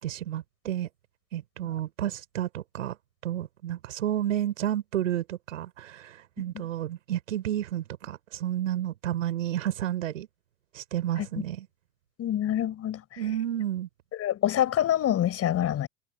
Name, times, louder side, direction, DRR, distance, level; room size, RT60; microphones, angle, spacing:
voice 1, 0.0-0.9 1.3-3.0 3.2-10.3 10.7-11.7 13.2-13.9, right 12 dB, 80° right, 5.9 m, -31 dB
voice 2, 12.2-13.2 14.1-15.9, left 11 dB, 40° left, 5.5 m, -26 dB
hypercardioid pair, 90°, 38 cm